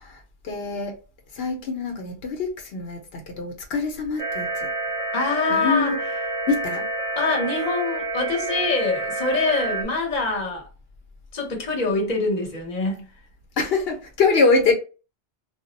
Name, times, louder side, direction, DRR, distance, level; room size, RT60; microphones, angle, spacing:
voice 1, 0.4-1.0 1.3-4.7 5.5-6.0 6.5-6.9 13.6-14.7, left 4 dB, 80° left, 0.9 m, -24 dB
sound 1, 4.2-9.8, right 2 dB, 40° right, 0.6 m, -28 dB
voice 2, 5.1-6.0 7.2-10.7 11.3-13.1, left 3 dB, 45° left, 0.9 m, -24 dB
2.3 x 2.0 x 3.8 m
omnidirectional pair, 1.0 m